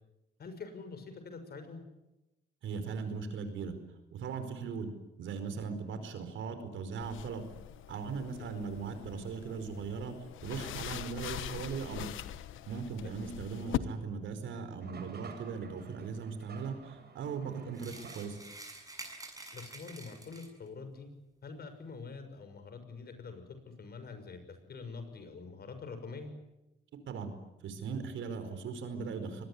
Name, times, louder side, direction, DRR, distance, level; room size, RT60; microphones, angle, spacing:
voice 1, 0.4-1.8 8.4-8.7 13.0-13.2 19.5-21.1 21.4-24.4 24.7-26.3, left 4 dB, 50° left, 9 dB, 6.5 m, -45 dB
voice 2, 2.6-3.8 4.1-4.9 5.2-7.5 7.9-10.1 10.4-12.1 12.7-18.4 27.1-27.3 27.6-29.4, right 5 dB, 75° right, 9 dB, 5.0 m, -39 dB
sound 1, 7.0-13.8, left 14 dB, 85° left, 1.2 m, -42 dB
sound 2, 14.8-18.7, right 4 dB, 55° right, 7.3 m, -51 dB
sound 3, 17.7-20.7, right 2 dB, 15° right, 7.1 m, -48 dB
24.0 x 21.0 x 9.9 m, 0.95 s
cardioid pair, 90°, 20 cm